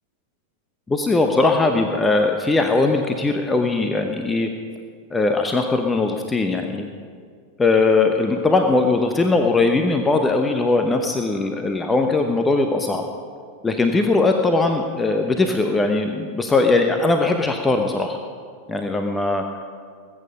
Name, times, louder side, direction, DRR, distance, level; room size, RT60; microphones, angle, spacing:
voice 1, 0.9-4.5 5.1-6.9 7.6-13.0 13.6-18.2 18.7-19.4, left 3 dB, 10° left, 5 dB, 0.9 m, -20 dB
20.5 x 8.8 x 5.2 m, 2.1 s
figure-of-eight pair, 90°, 0 cm